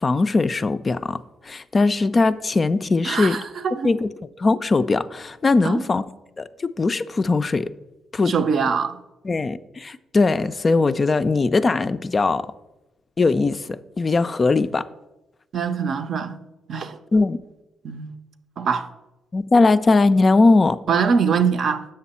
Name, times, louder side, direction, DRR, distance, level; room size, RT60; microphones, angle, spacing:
voice 1, 0.0-3.4 3.8-4.1 4.4-6.0 6.4-7.7 8.1-8.3 9.2-12.5 13.2-14.9 17.1-17.4 19.3-20.8, left 3 dB, 30° left, 0.3 m, -20 dB
voice 2, 3.0-3.9 5.6-5.9 8.3-9.0 15.5-16.4 16.7-17.0 17.8-18.1 18.6-18.9 20.9-21.8, right 6 dB, 55° right, 0.5 m, -23 dB
7.7 x 6.1 x 4.2 m
cardioid pair, 90°, 0 cm